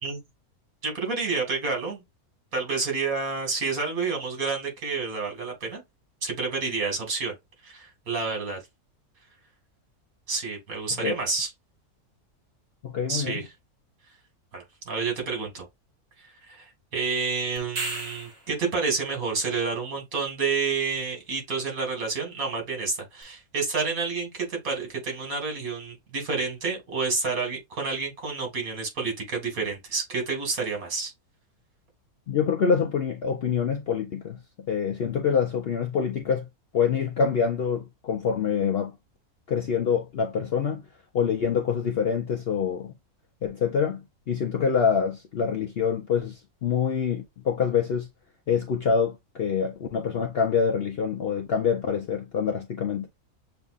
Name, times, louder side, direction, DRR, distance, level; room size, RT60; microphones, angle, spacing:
voice 1, 0.8-2.0 2.5-5.8 6.2-7.3 7.6-8.6 10.3-11.5 13.1-13.5 14.5-15.7 16.5-31.1, right 4 dB, 70° right, 2.3 m, -29 dB
voice 2, 12.8-13.4 32.3-34.4 34.7-36.5 36.7-38.9 39.5-40.8 41.1-42.9 43.4-48.1 48.5-53.1, left 6 dB, 65° left, 0.6 m, -26 dB
sound 1, 17.6-18.5 23.2-23.3, right 2 dB, 45° right, 1.4 m, -33 dB
6.8 x 2.5 x 2.4 m
omnidirectional pair, 1.6 m